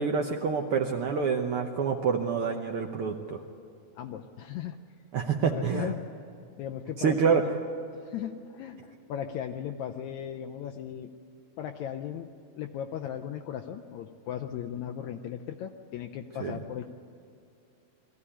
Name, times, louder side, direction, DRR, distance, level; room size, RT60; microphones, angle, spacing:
voice 1, 0.0-3.4 5.1-5.9 7.0-7.4 16.4-16.6, right 6 dB, 65° right, 3 dB, 1.5 m, -27 dB
voice 2, 4.0-4.8 5.4-6.1 6.6-7.5 8.0-11.1 11.6-12.3 12.6-16.9, left 9 dB, 75° left, 5 dB, 2.0 m, -37 dB
22.0 x 14.5 x 9.9 m, 2.7 s
omnidirectional pair, 3.4 m